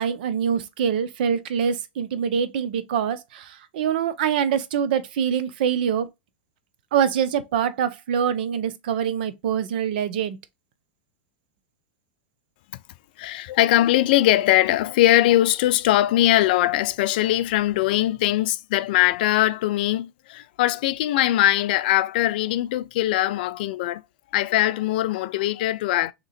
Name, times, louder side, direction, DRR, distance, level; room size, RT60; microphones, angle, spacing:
voice 1, 0.0-6.1 6.9-10.4, right 8 dB, 70° right, 0.6 m, -24 dB
voice 2, 13.2-24.0 24.3-26.1, left 14 dB, 65° left, 0.4 m, -21 dB
3.6 x 2.9 x 4.1 m
hypercardioid pair, 105°, 5 cm